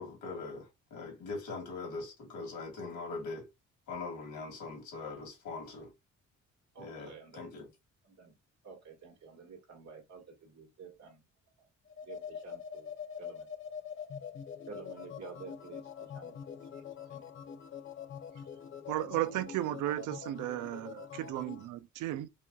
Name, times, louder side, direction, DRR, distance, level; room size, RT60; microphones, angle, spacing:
voice 1, 0.0-3.5 3.9-5.9 6.8-7.7, left 3 dB, 75° left, 2.2 m, -41 dB
voice 2, 6.7-7.6 8.0-8.3 8.6-11.2 11.6-11.7 12.0-12.9 13.2-13.5 14.7-16.6 17.1-17.2, right 5 dB, 60° right, 1.9 m, -50 dB
sound 1, 11.9-21.7, left 7 dB, 45° left, 0.6 m, -45 dB
voice 3, 18.9-22.3, right 14 dB, 85° right, 0.5 m, -34 dB
4.8 x 2.6 x 2.3 m
cardioid pair, 90°, 30 cm